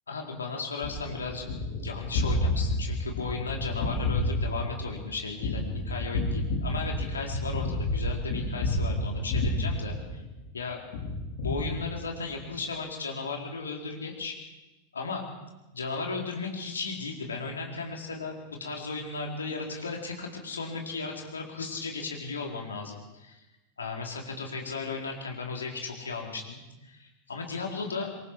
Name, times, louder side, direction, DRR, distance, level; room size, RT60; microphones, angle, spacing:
voice 1, 0.1-10.2 10.5-10.8 11.4-14.4 14.9-15.3 15.7-23.4 23.8-28.1, left 4 dB, 70° left, 1 dB, 4.1 m, -35 dB
Gunshot gunfire, 0.8-10.5 10.9-12.3, left 1 dB, 50° left, 5.1 m, -30 dB
26.0 x 23.0 x 4.8 m, 1.1 s
figure-of-eight pair, 90°, 0 cm